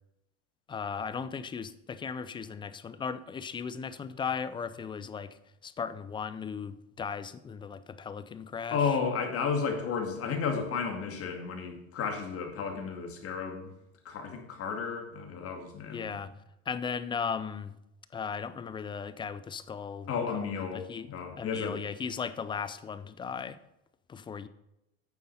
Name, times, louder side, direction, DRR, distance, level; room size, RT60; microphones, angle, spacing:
voice 1, 0.7-9.0 15.8-16.3 16.7-17.8 18.1-21.1 21.4-23.6 24.1-24.5, left 6 dB, 15° left, 0.3 m, -37 dB
voice 2, 8.7-13.7 14.0-16.1 20.1-21.8, left 5 dB, 35° left, 2.2 m, -33 dB
9.4 x 6.7 x 5.6 m
supercardioid pair, 125°, 39 cm